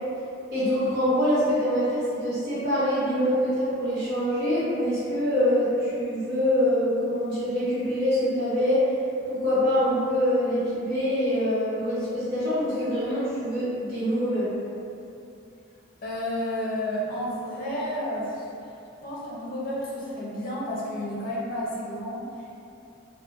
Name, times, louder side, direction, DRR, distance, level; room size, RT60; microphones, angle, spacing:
voice 1, 0.5-8.8 9.2-14.6, equal, 55° right, -13 dB, 0.9 m, -25 dB
voice 2, 16.0-18.8 19.0-22.5, left 1 dB, 45° left, -7 dB, 0.6 m, -31 dB
3.2 x 2.1 x 2.3 m, 2.6 s
head